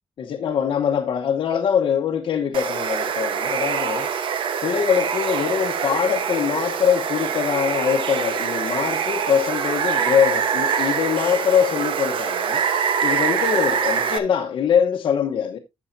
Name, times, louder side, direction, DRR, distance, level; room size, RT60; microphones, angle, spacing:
voice 1, 0.2-4.1 4.6-15.6, left 8 dB, 65° left, 1.0 m, -23 dB
Water, 2.5-14.2, right 7 dB, 75° right, 1.1 m, -24 dB
12.5 x 6.9 x 2.7 m
wide cardioid pair, 165°, 9 cm